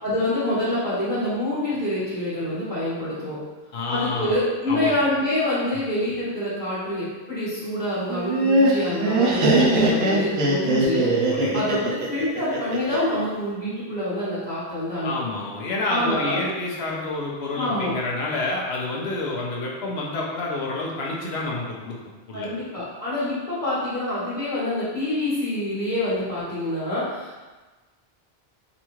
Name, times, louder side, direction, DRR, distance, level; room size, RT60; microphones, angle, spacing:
voice 1, 0.0-3.4 3.9-11.1 11.5-15.1 15.9-16.4 17.5-18.0 22.3-27.4, left 1 dB, 50° left, -14 dB, 1.3 m, -26 dB
voice 2, 3.7-4.3 4.7-5.0 11.3-11.6 15.0-22.0 22.3-22.5, left 2 dB, 80° left, -3 dB, 1.0 m, -28 dB
Laughter, 8.1-13.2, right 1 dB, 75° right, 0.9 m, -21 dB
3.9 x 2.4 x 3.0 m, 1.2 s
omnidirectional pair, 1.0 m